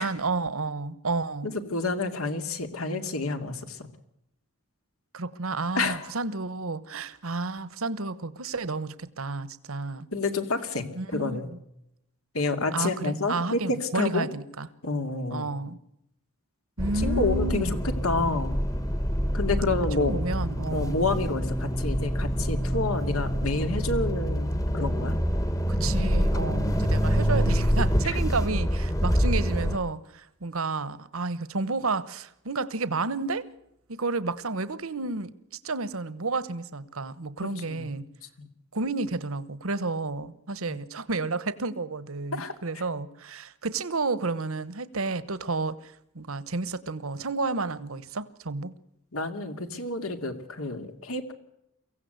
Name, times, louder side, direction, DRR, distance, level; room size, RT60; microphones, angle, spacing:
voice 1, 0.0-1.5 5.1-10.1 10.9-11.6 12.7-14.7 15.3-15.8 16.8-17.8 20.0-21.0 25.7-33.5 33.9-35.3 35.6-38.0 38.7-48.7, right 3 dB, 75° right, 1.1 m, -31 dB
voice 2, 1.4-3.9 5.7-6.1 10.1-11.5 12.3-14.3 14.8-15.5 16.9-17.8 18.0-18.6 19.3-20.1 20.7-25.2 28.0-28.2 37.4-38.0 38.4-38.5 40.7-40.8 42.3-42.5 49.1-51.3, left 3 dB, 80° left, 2.5 m, -29 dB
sound 1, 16.8-29.8, equal, 15° left, 1.1 m, -26 dB
24.0 x 16.5 x 8.1 m
head